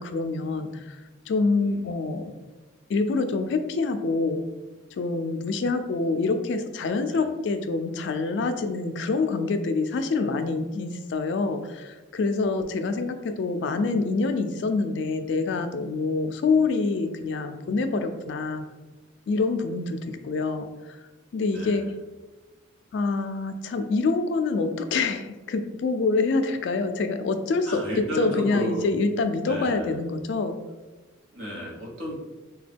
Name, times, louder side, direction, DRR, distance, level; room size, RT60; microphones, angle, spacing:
voice 1, 0.0-2.2 2.9-4.4 4.9-18.7 19.3-21.0 21.3-21.9 22.9-27.8 28.2-30.6, left 3 dB, 65° left, 8 dB, 0.3 m, -26 dB
voice 2, 21.4-21.9 27.6-28.9 29.4-30.0 31.3-32.1, equal, 70° right, -3 dB, 0.9 m, -33 dB
2.9 x 2.2 x 3.3 m, 1.2 s
head